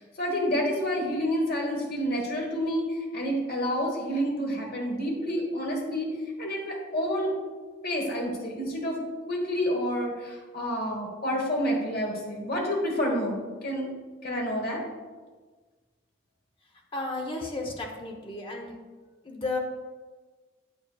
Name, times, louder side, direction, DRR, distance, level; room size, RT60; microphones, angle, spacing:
voice 1, 0.0-6.1 6.4-7.4 7.8-9.0 9.3-13.9 14.2-14.8, equal, 50° left, 0 dB, 1.3 m, -29 dB
voice 2, 16.9-18.8 19.2-19.6, left 2 dB, 25° left, 1 dB, 0.8 m, -33 dB
7.8 x 6.9 x 2.3 m, 1.4 s
head